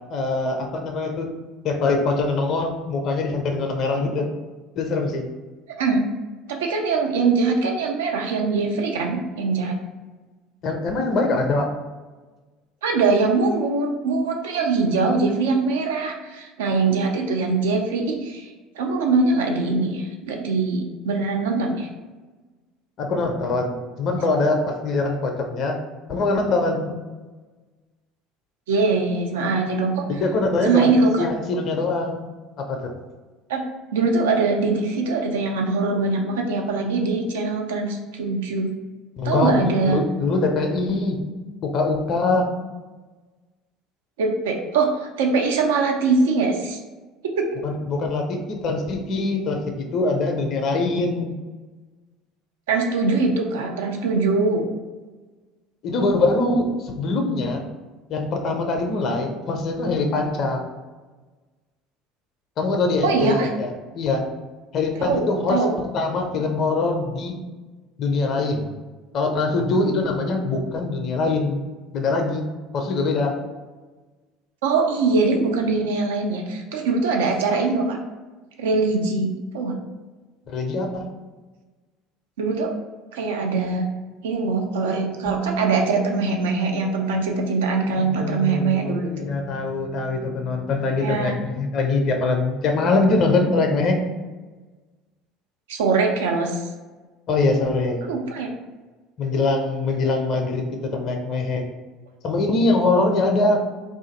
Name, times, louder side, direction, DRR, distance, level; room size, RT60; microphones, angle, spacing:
voice 1, 0.1-1.3 1.6-4.3 4.8-5.2 10.6-11.7 23.0-25.8 26.1-27.0 30.1-30.9 31.2-32.3 32.6-32.9 39.2-41.2 41.6-42.5 47.6-51.3 55.8-57.6 58.1-60.6 62.6-64.2 64.7-65.7 65.9-67.4 68.0-68.7 69.1-71.6 71.9-72.5 72.7-73.3 80.5-81.1 88.0-94.0 97.3-98.0 99.2-101.6 102.2-103.7, left 3 dB, 45° left, 3 dB, 0.4 m, -23 dB
voice 2, 6.5-9.8 12.8-18.5 18.8-21.9 28.7-30.0 30.6-31.3 33.5-33.6 33.9-38.7 39.2-40.0 44.2-46.8 47.2-47.4 52.7-54.7 63.0-63.5 65.0-65.2 65.5-65.7 74.6-78.0 78.6-79.8 82.4-82.7 83.1-83.9 84.2-89.3 91.0-91.4 95.7-96.6 98.0-98.5, right 4 dB, 70° right, 2 dB, 0.4 m, -22 dB
Bass guitar, 85.3-91.5, right 3 dB, 15° right, 0.5 m, -34 dB
2.5 x 2.4 x 3.8 m, 1.3 s
figure-of-eight pair, 65°, 0 cm